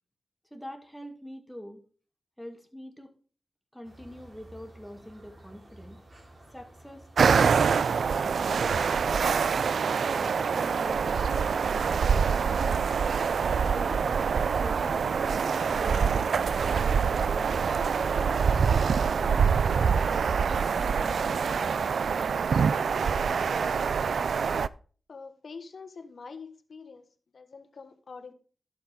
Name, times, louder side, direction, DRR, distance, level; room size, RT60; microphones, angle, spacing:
voice 1, 0.5-1.8 2.4-3.1 3.7-6.0 6.5-9.3 9.8-12.9 13.6-14.3 14.6-17.6 18.1-19.5 19.7-20.0 20.5-22.3, equal, ahead, 4 dB, 2.5 m, -44 dB
sound 1, 3.8-23.5, right 1 dB, 55° right, 4.5 m, -50 dB
sound 2, 7.2-24.7, right 6 dB, 85° right, 0.4 m, -25 dB
voice 2, 25.1-27.0 27.3-28.3, left 4 dB, 70° left, 9 dB, 1.4 m, -45 dB
11.5 x 7.9 x 3.5 m, 0.39 s
cardioid pair, 50°, 0 cm